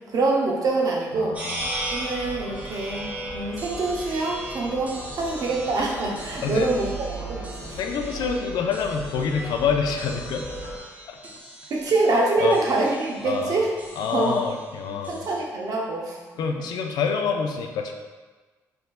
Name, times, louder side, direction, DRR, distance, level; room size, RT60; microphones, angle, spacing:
voice 1, 0.1-1.4 1.9-7.8 11.2-11.3 11.7-13.7 14.1-14.4 14.9-16.2, right 3 dB, 60° right, -2 dB, 0.7 m, -25 dB
voice 2, 1.2-1.6 6.4-6.7 7.8-10.8 11.1-11.2 12.4-12.6 13.2-13.6 14.0-15.2 16.4-17.9, left 6 dB, 75° left, 4 dB, 0.4 m, -27 dB
sound 1, 1.3-15.4, right 1 dB, 20° right, 0.7 m, -39 dB
sound 2, 1.6-10.8, right 1 dB, 15° left, 1.3 m, -38 dB
3.5 x 2.6 x 2.3 m, 1.3 s
supercardioid pair, 65°, 7 cm